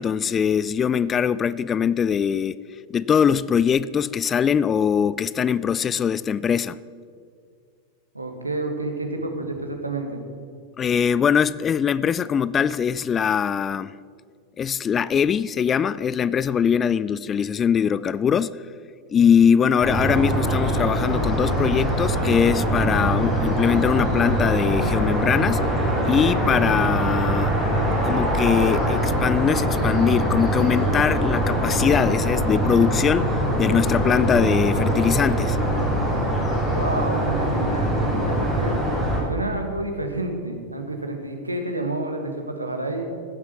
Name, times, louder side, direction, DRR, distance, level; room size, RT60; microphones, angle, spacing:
voice 1, 0.0-2.6 2.9-6.8 10.8-13.9 14.6-18.5 19.1-25.6 26.0-27.5 28.0-35.6, left 7 dB, 25° left, 0.3 m, -22 dB
voice 2, 8.1-10.2 36.6-38.8 39.2-43.1, right 2 dB, 80° right, 1.5 m, -29 dB
sound 1, 19.8-39.2, right 1 dB, 5° left, 3.7 m, -23 dB
16.0 x 7.5 x 6.0 m
figure-of-eight pair, 90°, 0 cm